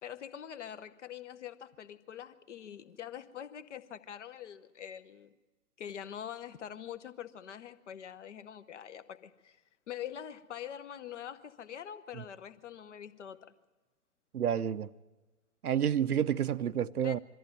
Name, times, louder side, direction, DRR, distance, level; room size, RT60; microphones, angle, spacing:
voice 1, 0.0-5.3 5.8-9.6 9.9-13.5 17.0-17.2, left 9 dB, 50° left, 0.9 m, -44 dB
voice 2, 14.3-14.9 15.6-17.2, right 9 dB, 75° right, 0.7 m, -29 dB
22.0 x 14.0 x 9.3 m
figure-of-eight pair, 125°, 45 cm